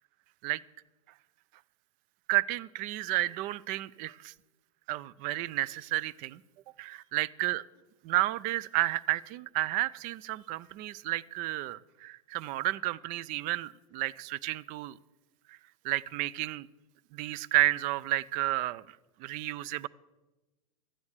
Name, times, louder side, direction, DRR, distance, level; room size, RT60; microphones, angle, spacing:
voice 1, 2.3-4.3 4.9-6.4 6.8-7.6 8.0-15.0 15.8-16.7 17.1-18.8 19.2-19.9, right 16 dB, 50° right, 21 dB, 0.4 m, -31 dB
12.5 x 9.5 x 6.6 m, 1.1 s
hypercardioid pair, 105°, 18 cm